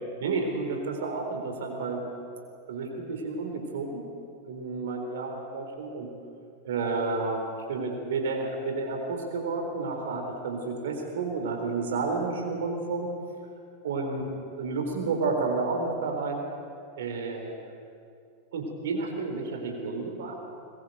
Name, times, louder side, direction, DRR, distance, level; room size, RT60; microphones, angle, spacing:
voice 1, 0.2-2.0 2.7-4.0 4.4-6.1 6.6-13.1 13.8-14.3 14.6-16.4 17.0-17.6 18.5-20.4, right 3 dB, 60° right, 2 dB, 4.1 m, -31 dB
22.0 x 21.5 x 8.1 m, 2.4 s
figure-of-eight pair, 90°, 0 cm